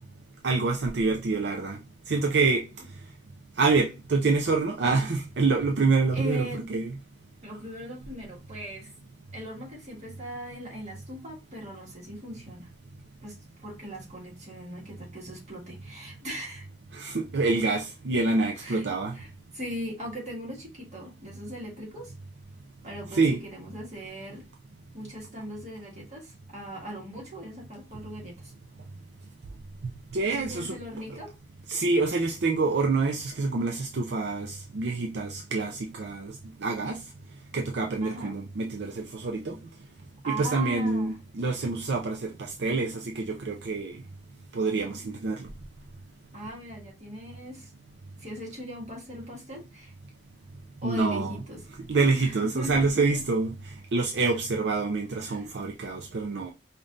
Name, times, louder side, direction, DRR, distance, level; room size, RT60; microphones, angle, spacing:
voice 1, 0.4-1.8 2.1-2.6 3.6-7.0 16.9-19.1 23.1-23.4 30.1-30.7 31.7-36.3 36.6-37.0 37.5-39.6 40.3-44.0 44.5-45.5 50.8-51.4 51.9-53.5 53.9-56.5, right 3 dB, 70° right, 0.5 m, -26 dB
voice 2, 6.1-6.7 7.4-8.9 9.3-12.7 13.2-16.7 18.6-18.9 19.1-22.1 22.8-24.4 24.9-28.5 30.2-31.3 38.0-38.3 40.2-41.2 46.3-47.7 48.2-49.9 50.8-51.6 51.9-53.2 55.3-55.5, equal, 40° right, 1.7 m, -39 dB
5.2 x 2.7 x 2.5 m
head